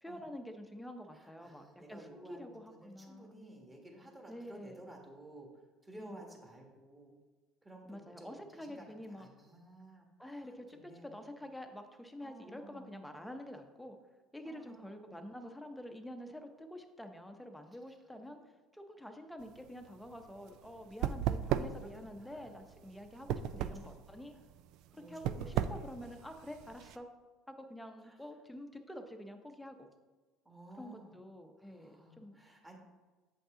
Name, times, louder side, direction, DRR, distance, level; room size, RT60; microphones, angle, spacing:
voice 1, 0.0-3.4 4.3-4.9 6.0-6.2 7.9-9.3 10.2-14.0 14.3-18.4 18.7-24.3 24.9-27.1 27.5-29.9 30.8-32.4, equal, 5° left, 5 dB, 0.8 m, -48 dB
voice 2, 1.1-5.5 5.8-7.2 7.6-11.3 12.2-13.0 14.4-15.3 21.8-21.9 22.2-22.6 23.5-24.1 24.3-24.4 25.0-26.1 28.0-28.2 30.4-31.1 31.6-32.8, right 1 dB, 15° right, 0 dB, 1.7 m, -55 dB
sound 1, 19.4-27.0, right 10 dB, 70° right, 0.3 m, -37 dB
7.8 x 5.3 x 3.8 m, 1.3 s
cardioid pair, 115°, 0 cm